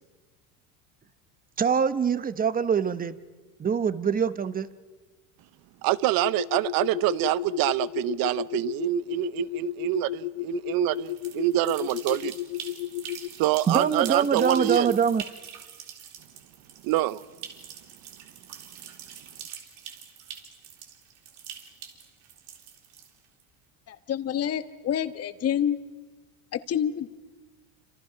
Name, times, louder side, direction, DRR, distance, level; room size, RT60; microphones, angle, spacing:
voice 1, 1.6-3.2 3.6-4.7 13.7-15.2, right 6 dB, 20° right, 1.0 m, -24 dB
voice 2, 5.8-12.3 13.4-15.0 16.8-17.2, right 17 dB, 55° right, 0.9 m, -26 dB
sound 1, 6.2-13.3, left 16 dB, 60° left, 0.9 m, -33 dB
sound 2, 10.9-23.4, right 9 dB, 80° right, 4.0 m, -44 dB
voice 3, 23.9-25.8 26.5-27.1, left 9 dB, 35° left, 1.4 m, -28 dB
29.0 x 26.5 x 6.0 m
supercardioid pair, 125°, 41 cm